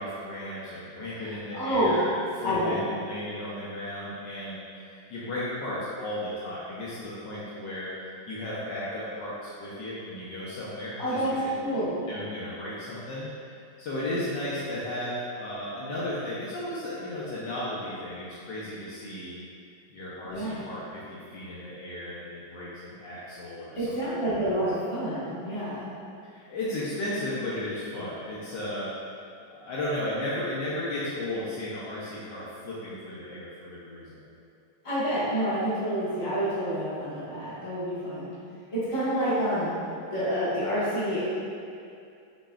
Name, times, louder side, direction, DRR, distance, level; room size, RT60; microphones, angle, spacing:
voice 1, 0.0-11.8 12.1-19.3 19.9-23.9 24.4-24.6 26.3-28.9 29.5-34.2, left 1 dB, 70° left, -8 dB, 1.3 m, -35 dB
voice 2, 1.2-2.0 2.4-2.8 11.0-11.3 11.6-12.0 20.2-20.6 23.7-25.9 34.8-38.3 38.7-39.8 40.1-41.3, equal, 20° left, -12 dB, 1.3 m, -28 dB
6.4 x 3.1 x 2.3 m, 2.5 s
omnidirectional pair, 2.1 m